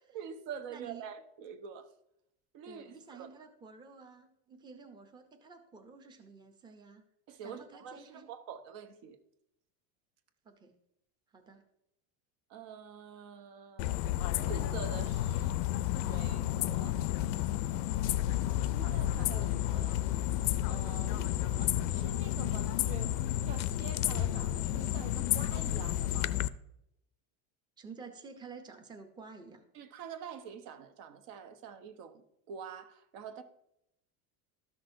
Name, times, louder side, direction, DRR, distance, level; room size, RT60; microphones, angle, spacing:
voice 1, 0.0-1.9 2.5-3.3 7.3-9.2 12.5-14.0 14.4-15.6 15.9-17.0 18.7-20.1 20.7-26.3 29.7-33.4, right 7 dB, 60° right, 1.0 m, -46 dB
voice 2, 0.7-1.0 2.6-7.0 7.4-8.3 10.4-10.7 11.3-11.6 27.8-29.6, right 4 dB, 10° right, 0.6 m, -51 dB
sound 1, 13.8-26.5, left 13 dB, 70° left, 0.5 m, -31 dB
13.0 x 6.1 x 2.6 m
cardioid pair, 150°, 41 cm